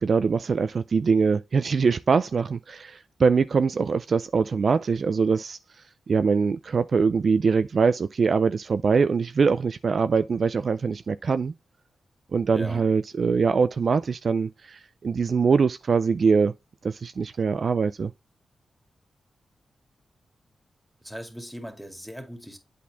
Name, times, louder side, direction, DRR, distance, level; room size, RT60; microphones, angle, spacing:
voice 1, 0.0-5.6 6.1-11.5 12.3-16.5 16.8-18.1, right 5 dB, 60° right, 0.4 m, -23 dB
voice 2, 12.5-12.9 21.0-22.6, equal, 5° right, 2.1 m, -39 dB
8.4 x 4.1 x 3.4 m
cardioid pair, 60°, 0 cm